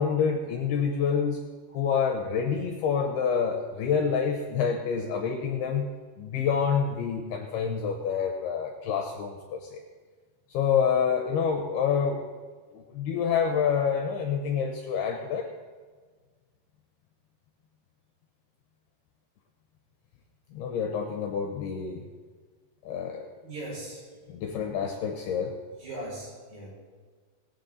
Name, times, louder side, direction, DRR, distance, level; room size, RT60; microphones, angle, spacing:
voice 1, 0.0-1.4 1.7-5.9 6.2-9.8 10.5-12.2 12.7-15.5 20.5-22.0 22.8-23.3 24.3-25.6, left 6 dB, 75° left, 2 dB, 2.5 m, -27 dB
voice 2, 23.4-24.1 25.8-26.7, right 1 dB, 50° right, -5 dB, 6.1 m, -39 dB
20.0 x 8.5 x 4.0 m, 1.5 s
omnidirectional pair, 5.4 m